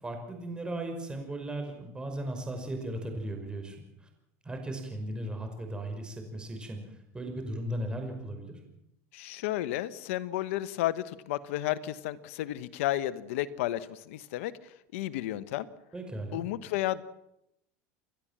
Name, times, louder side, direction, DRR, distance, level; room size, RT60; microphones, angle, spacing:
voice 1, 0.0-3.8 4.4-6.8 7.1-8.6 15.9-16.5, right 1 dB, 10° right, 4 dB, 5.6 m, -36 dB
voice 2, 9.1-14.5 14.9-15.7 16.3-17.0, left 14 dB, 80° left, 15 dB, 1.1 m, -32 dB
30.0 x 12.0 x 7.5 m, 0.82 s
supercardioid pair, 110°, 7 cm